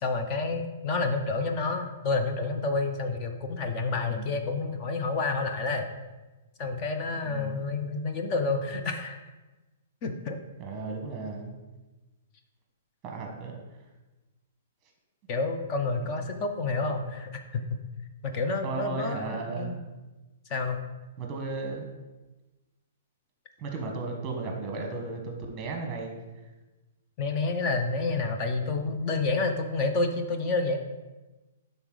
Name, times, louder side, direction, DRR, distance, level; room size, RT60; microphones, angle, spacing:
voice 1, 0.0-5.9 6.6-9.2 10.0-10.4 15.3-17.8 18.2-19.8 20.5-20.8 27.2-30.8, left 3 dB, 25° left, 6 dB, 0.5 m, -29 dB
voice 2, 4.0-4.3 7.2-7.6 10.6-11.5 13.0-13.6 16.3-16.5 18.6-19.8 21.2-21.9 23.6-26.1, right 3 dB, 15° right, 2 dB, 1.1 m, -35 dB
10.5 x 4.0 x 3.9 m, 1.2 s
hypercardioid pair, 170°, 0 cm